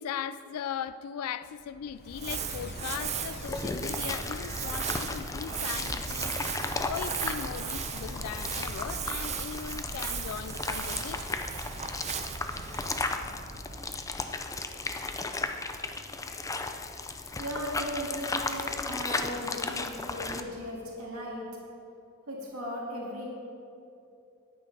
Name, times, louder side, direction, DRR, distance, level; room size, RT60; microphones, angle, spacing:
voice 1, 0.0-6.4 6.9-11.4, left 8 dB, 90° left, 0.3 m, -38 dB
sound 1, 1.5-8.9, left 2 dB, 50° left, 0.8 m, -48 dB
Crumpling crinkling, 2.0-14.5, right 6 dB, 30° right, 0.6 m, -36 dB
sound 2, 3.4-20.4, left 3 dB, 15° left, 0.5 m, -35 dB
voice 2, 17.4-21.5 22.3-23.3, equal, 80° right, 2.5 m, -37 dB
10.0 x 8.7 x 5.4 m
head